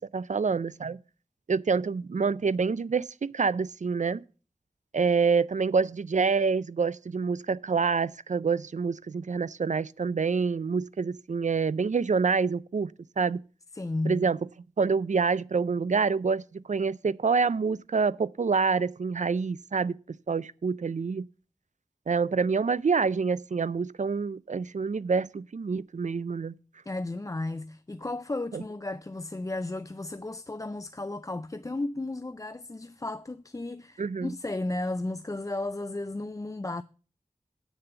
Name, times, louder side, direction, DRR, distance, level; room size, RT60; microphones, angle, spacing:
voice 1, 0.1-1.0 1.5-4.2 4.9-12.9 13.2-13.4 14.1-14.4 14.8-20.0 20.3-21.3 22.1-26.5 28.5-28.6 34.0-34.3, right 5 dB, 60° right, 0.4 m, -27 dB
voice 2, 13.7-14.3 26.9-36.8, left 2 dB, 25° left, 0.4 m, -34 dB
8.6 x 6.9 x 6.8 m
wide cardioid pair, 50°, 14 cm